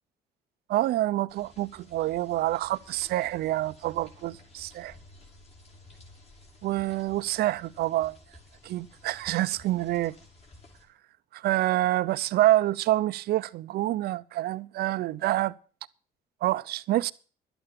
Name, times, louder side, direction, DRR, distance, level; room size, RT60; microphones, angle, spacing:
voice 1, 0.7-4.9 6.6-8.2 8.6-10.1 11.3-15.5 16.4-17.1, right 15 dB, 70° right, 0.6 m, -27 dB
sound 1, 1.3-10.9, left 1 dB, 40° left, 5.1 m, -54 dB
12.0 x 9.0 x 6.8 m
cardioid pair, 110°, 17 cm